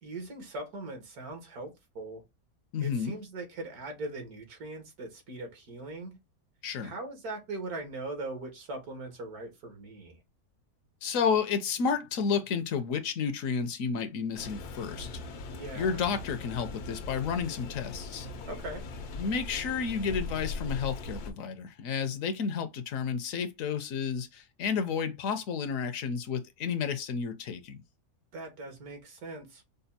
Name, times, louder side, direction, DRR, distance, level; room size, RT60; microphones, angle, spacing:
voice 1, 0.0-2.2 2.8-6.1 6.8-10.2 15.4-16.1 18.5-18.8 28.3-29.6, right 2 dB, 80° right, 1.8 m, -40 dB
voice 2, 2.7-3.2 6.6-6.9 11.0-15.2 15.7-18.3 19.2-27.8, left 6 dB, 70° left, 0.9 m, -31 dB
sound 1, 14.4-21.3, left 3 dB, 85° left, 1.3 m, -40 dB
5.1 x 2.2 x 2.7 m
omnidirectional pair, 1.6 m